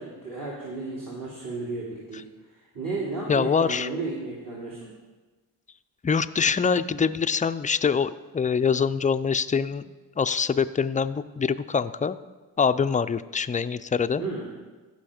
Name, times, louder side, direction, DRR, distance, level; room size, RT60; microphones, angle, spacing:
voice 1, 0.0-4.9 14.2-14.5, right 3 dB, 50° right, -7 dB, 2.8 m, -34 dB
voice 2, 3.3-3.9 6.0-9.8 10.2-12.2 12.6-14.2, left 6 dB, 20° left, 13 dB, 0.3 m, -24 dB
14.5 x 5.7 x 5.0 m, 1.3 s
cardioid pair, 60°, 42 cm